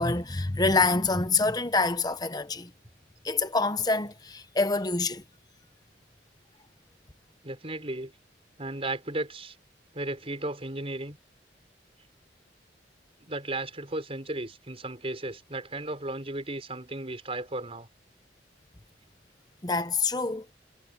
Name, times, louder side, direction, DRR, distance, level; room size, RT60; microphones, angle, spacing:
voice 1, 0.0-2.7 3.2-5.2 19.6-20.4, left 3 dB, 20° left, 1.1 m, -26 dB
voice 2, 7.4-8.1 8.6-9.6 9.9-11.2 13.2-17.9, right 2 dB, 35° right, 5.8 m, -35 dB
head